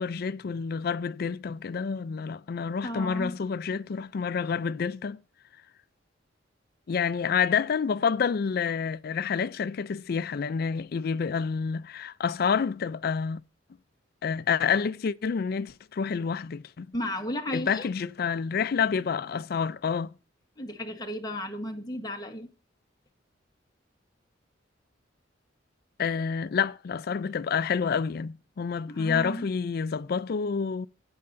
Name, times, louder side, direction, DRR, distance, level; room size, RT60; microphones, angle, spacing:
voice 1, 0.0-5.2 6.9-13.4 14.2-16.9 17.5-20.1 26.0-30.9, left 6 dB, 50° left, 0.4 m, -28 dB
voice 2, 2.8-3.4 16.9-17.9 20.6-22.5 28.9-29.5, left 1 dB, 20° left, 1.2 m, -34 dB
13.0 x 9.5 x 2.6 m
head